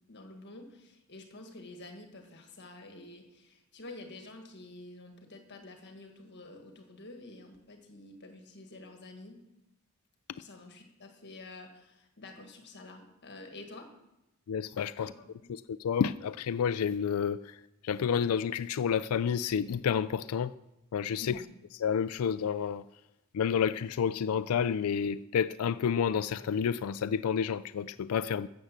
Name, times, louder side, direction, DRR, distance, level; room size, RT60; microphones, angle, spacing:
voice 1, 0.1-9.4 10.4-13.9 15.0-15.5 21.2-21.5, left 2 dB, 55° left, 4 dB, 1.6 m, -49 dB
voice 2, 14.5-15.1 15.5-20.5 20.9-21.4 21.7-22.9 23.3-28.5, left 7 dB, 85° left, 14 dB, 0.4 m, -30 dB
13.0 x 7.7 x 7.3 m, 0.92 s
head